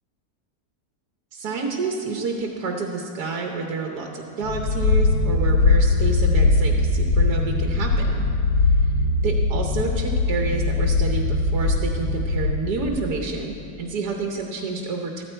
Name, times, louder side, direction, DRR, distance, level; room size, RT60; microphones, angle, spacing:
voice 1, 1.3-8.2 8.8-8.9 9.2-15.2, right 4 dB, 80° right, 1 dB, 1.6 m, -29 dB
sound 1, 4.4-12.9, left 3 dB, 85° left, 1.3 m, -21 dB
14.0 x 14.0 x 4.4 m, 2.7 s
omnidirectional pair, 1.7 m